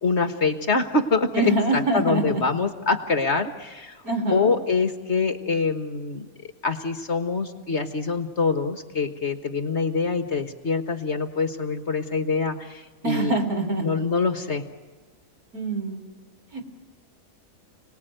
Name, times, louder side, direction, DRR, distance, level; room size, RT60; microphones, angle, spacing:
voice 1, 0.0-4.0 4.3-6.3 6.6-13.3 13.8-14.6, left 4 dB, 45° left, 8 dB, 1.6 m, -25 dB
voice 2, 1.3-2.4 4.0-4.5 13.0-13.9 15.5-16.0 16.5-16.7, right 2 dB, 60° right, 4 dB, 4.0 m, -25 dB
30.0 x 19.5 x 9.2 m, 1.4 s
omnidirectional pair, 1.7 m